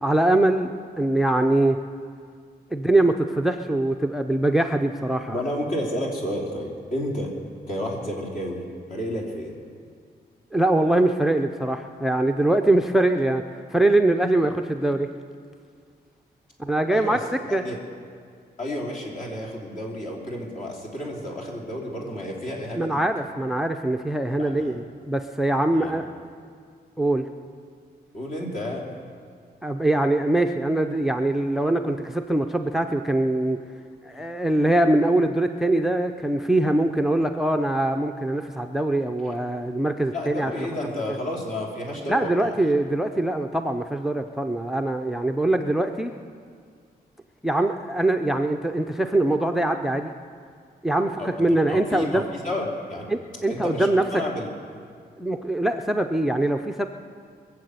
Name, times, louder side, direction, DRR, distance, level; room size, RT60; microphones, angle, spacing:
voice 1, 0.0-1.8 2.7-5.4 10.5-13.4 13.7-15.1 16.6-17.2 17.5-17.6 22.8-26.1 27.0-27.2 29.6-33.6 34.0-40.7 42.1-46.1 47.4-50.1 50.8-52.3 53.1-54.1 55.2-56.9, right 1 dB, ahead, 7 dB, 0.4 m, -23 dB
voice 2, 5.3-7.3 7.7-8.6 8.9-9.5 16.9-17.2 17.6-17.8 18.6-23.0 24.4-24.7 25.7-26.0 28.1-28.8 40.1-42.5 51.2-51.3 51.7-53.1 53.5-54.5, left 1 dB, 55° left, -1 dB, 3.1 m, -31 dB
22.0 x 7.5 x 7.9 m, 2.1 s
wide cardioid pair, 160°, 17 cm